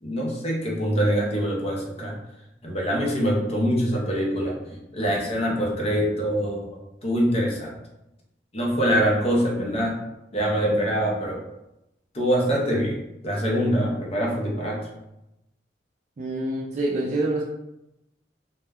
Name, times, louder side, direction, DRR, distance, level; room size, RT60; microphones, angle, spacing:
voice 1, 0.0-2.1 2.6-7.7 8.5-10.0 10.3-11.4 12.1-14.9, equal, 35° left, -2 dB, 0.6 m, -24 dB
voice 2, 16.2-17.4, right 2 dB, 40° right, -3 dB, 0.3 m, -26 dB
2.2 x 2.1 x 3.4 m, 0.91 s
head